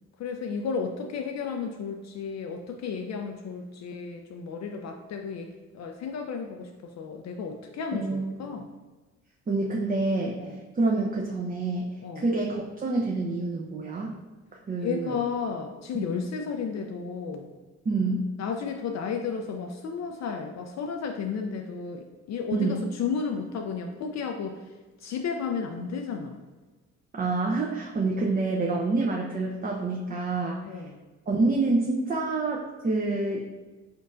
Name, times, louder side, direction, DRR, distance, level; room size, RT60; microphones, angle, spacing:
voice 1, 0.2-8.7 10.4-10.6 12.0-12.3 14.8-17.5 18.4-24.7 25.0-26.4 30.6-31.0, left 5 dB, 50° left, 3 dB, 0.5 m, -33 dB
voice 2, 7.9-8.3 9.5-10.4 10.8-14.1 14.7-15.2 15.9-16.0 17.9-18.3 22.5-22.8 27.1-30.6 31.3-33.5, right 3 dB, 25° right, -2 dB, 0.6 m, -27 dB
4.4 x 3.8 x 2.4 m, 1.3 s
hypercardioid pair, 50°, 34 cm